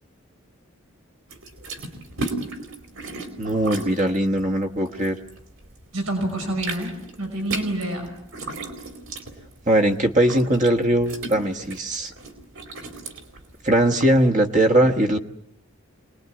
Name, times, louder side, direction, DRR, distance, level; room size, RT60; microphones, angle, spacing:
sound 1, 1.3-5.8 6.1-14.2, right 3 dB, 65° right, 4.3 m, -35 dB
voice 1, 3.4-5.2 9.7-12.1 13.6-15.2, right 1 dB, 35° right, 5 dB, 1.3 m, -20 dB
voice 2, 5.9-8.1, right 1 dB, 90° right, 4 dB, 5.9 m, -28 dB
27.0 x 20.0 x 9.5 m, 0.74 s
head